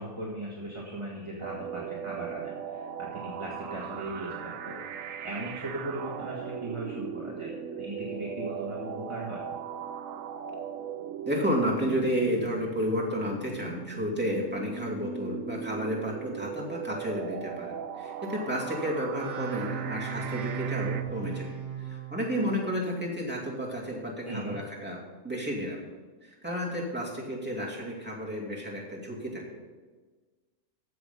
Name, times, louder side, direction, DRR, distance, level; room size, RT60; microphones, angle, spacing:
voice 1, 0.0-9.5 24.2-24.6, right 1 dB, 25° right, -3 dB, 1.7 m, -38 dB
sound 1, 1.4-21.0, right 8 dB, 85° right, 1.1 m, -39 dB
voice 2, 11.3-21.5 21.8-25.0 25.2-25.8 26.2-29.6, equal, 10° right, -4 dB, 2.5 m, -31 dB
sound 2, 19.1-22.8, right 7 dB, 85° left, 2.9 m, -36 dB
15.0 x 6.5 x 5.4 m, 1.3 s
omnidirectional pair, 1.3 m